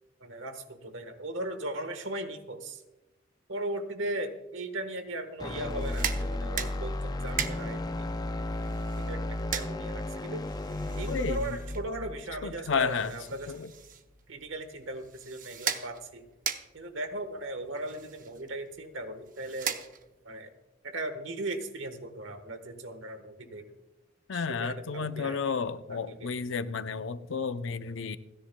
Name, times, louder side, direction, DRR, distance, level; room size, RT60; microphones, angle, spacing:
voice 1, 0.2-2.8 3.5-8.1 9.1-10.5 10.9-13.5 14.3-16.2 16.7-19.8 20.2-20.5 20.8-23.7 24.3-25.4 25.9-26.3, right 1 dB, 70° right, 9 dB, 1.3 m, -38 dB
sound 1, 5.4-13.5, left 1 dB, 20° left, 0.4 m, -34 dB
sound 2, 5.7-20.3, right 7 dB, 45° right, 0.8 m, -40 dB
voice 2, 11.1-11.6 12.4-13.1 13.5-13.7 24.3-28.2, left 5 dB, 70° left, 12 dB, 0.6 m, -32 dB
29.0 x 10.5 x 2.2 m, 1.0 s
head